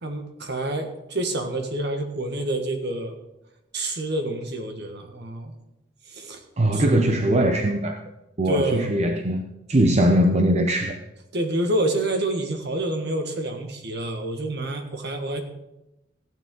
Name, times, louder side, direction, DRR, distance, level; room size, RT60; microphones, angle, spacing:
voice 1, 0.0-3.1 3.7-5.5 6.1-6.4 6.7-6.8 8.4-8.9 11.3-15.4, right 1 dB, 60° right, 5 dB, 1.7 m, -27 dB
voice 2, 6.6-8.0 8.4-9.4 9.7-11.0, right 1 dB, 35° right, 5 dB, 0.7 m, -20 dB
15.5 x 9.4 x 3.9 m, 0.90 s
head